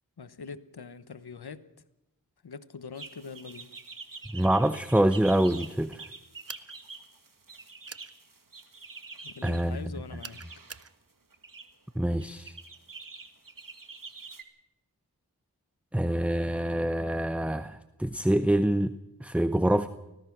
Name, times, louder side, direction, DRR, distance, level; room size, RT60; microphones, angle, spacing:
voice 1, 0.2-1.7 2.4-3.7 9.2-10.4, left 5 dB, 85° left, 1.1 m, -43 dB
sound 1, 3.0-9.6 10.2-10.9 11.3-11.7 12.2-14.4, right 4 dB, 60° right, 2.0 m, -46 dB
voice 2, 4.3-6.0 9.4-9.8 12.0-12.6 15.9-18.9 19.2-19.9, right 1 dB, 5° right, 0.7 m, -25 dB
sound 2, 6.5-6.8 7.9-8.1 10.2-10.9, right 4 dB, 40° right, 0.9 m, -43 dB
24.5 x 17.5 x 6.0 m
wide cardioid pair, 55°, 38 cm